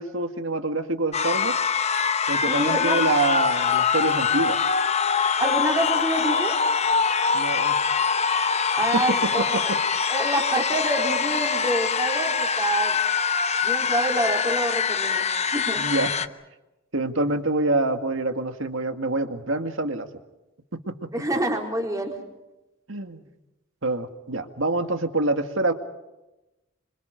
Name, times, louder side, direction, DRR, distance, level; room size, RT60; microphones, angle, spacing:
voice 1, 0.0-1.5 2.3-4.6 7.3-7.8 8.9-9.0 9.4-9.8 15.8-16.1 16.9-20.1 20.7-21.1 22.9-23.3 23.8-25.7, right 2 dB, 70° right, 7 dB, 2.0 m, -26 dB
sound 1, 1.1-16.3, left 6 dB, 30° left, 0.9 m, -24 dB
voice 2, 2.5-3.0 5.4-6.6 8.8-9.7 10.1-13.0 13.6-15.8 21.1-22.2, right 1 dB, 15° right, 1 dB, 4.2 m, -27 dB
27.0 x 26.5 x 5.2 m, 0.99 s
head